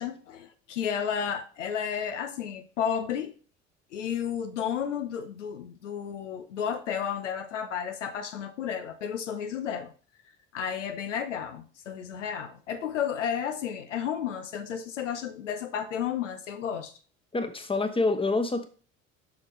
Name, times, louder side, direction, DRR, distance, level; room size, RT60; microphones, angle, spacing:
voice 1, 0.0-3.3 3.9-9.9 10.5-16.9, left 8 dB, 75° left, 7 dB, 0.9 m, -32 dB
voice 2, 17.3-18.7, left 3 dB, 15° left, 8 dB, 1.2 m, -26 dB
7.4 x 6.0 x 3.2 m, 0.38 s
figure-of-eight pair, 60°, 37 cm